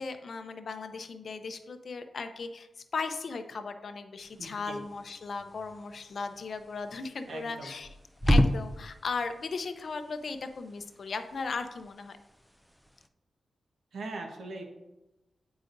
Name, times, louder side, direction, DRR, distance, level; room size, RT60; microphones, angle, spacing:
voice 1, 0.0-2.7 2.9-7.9 8.3-12.2, left 4 dB, 55° left, 8 dB, 0.5 m, -37 dB
sound 1, 4.2-13.1, equal, ahead, 0.3 m, -34 dB
voice 2, 4.4-4.8 7.3-7.7 13.9-14.6, right 2 dB, 80° right, 2 dB, 1.1 m, -40 dB
9.1 x 4.8 x 2.6 m, 0.97 s
wide cardioid pair, 130°, 0 cm